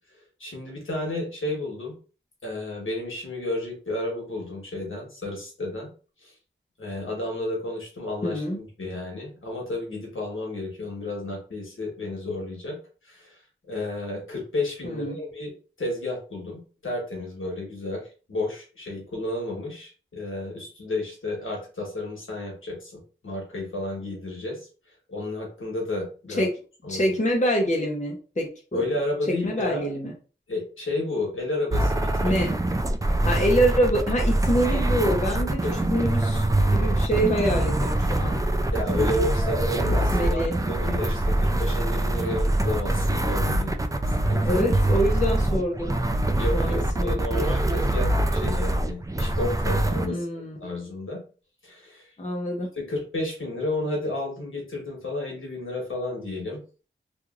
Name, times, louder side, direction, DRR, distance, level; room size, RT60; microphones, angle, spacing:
voice 1, 0.1-1.9 2.4-5.9 6.2-6.3 6.8-12.8 13.0-13.4 13.7-15.5 15.8-24.6 25.1-26.4 26.8-27.2 28.7-29.9 30.5-32.4 35.6-35.8 38.7-43.7 44.1-44.6 46.4-50.2 50.6-51.2 51.6-52.1 52.7-56.6, left 2 dB, 85° left, -1 dB, 1.2 m, -32 dB
voice 2, 8.2-8.6 14.8-15.2 26.4-26.5 26.9-28.8 29.4-30.1 32.2-32.5 33.3-35.6 35.9-38.4 40.1-40.6 44.4-46.0 46.5-47.5 50.1-50.6 52.2-52.7, equal, 35° left, -1 dB, 0.7 m, -25 dB
sound 1, 31.7-50.1, right 1 dB, 15° right, 0.3 m, -24 dB
3.0 x 2.4 x 2.4 m, 0.36 s
wide cardioid pair, 65°, 20 cm